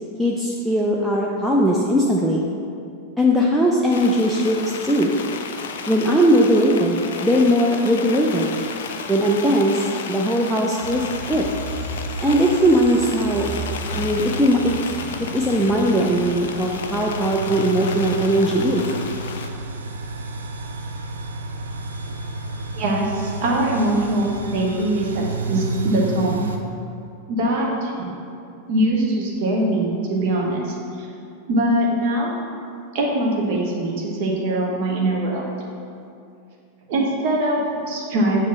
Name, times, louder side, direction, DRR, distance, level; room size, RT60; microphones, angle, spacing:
voice 1, 0.2-2.4 3.2-4.6 4.8-5.1 5.9-8.5 9.1-11.5 12.2-13.5 13.9-14.7 15.2-18.8, equal, 5° right, -3 dB, 0.5 m, -19 dB
sound 1, 3.9-19.5, left 5 dB, 60° left, 0.4 m, -33 dB
sound 2, 10.8-26.6, right 2 dB, 70° right, 0.5 m, -31 dB
voice 2, 22.7-26.4 27.3-28.1 28.7-30.6 31.5-32.4 32.9-35.4 36.9-38.5, right 1 dB, 45° right, -3 dB, 1.0 m, -22 dB
7.3 x 3.0 x 5.8 m, 2.5 s
figure-of-eight pair, 90°, 0 cm